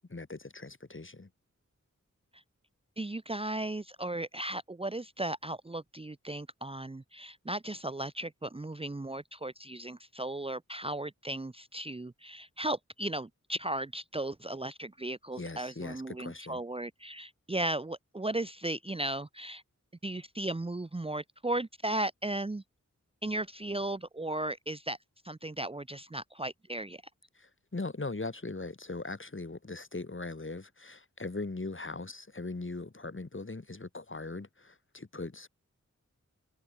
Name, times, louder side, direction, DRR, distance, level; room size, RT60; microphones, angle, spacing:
voice 1, 0.1-1.3 15.4-16.6 27.3-35.5, left 3 dB, 40° left, 5.4 m, -40 dB
voice 2, 3.0-19.6 20.0-22.6 23.2-25.0 25.2-27.0, right 1 dB, 20° right, 0.8 m, -36 dB
wide cardioid pair, 80°, 30 cm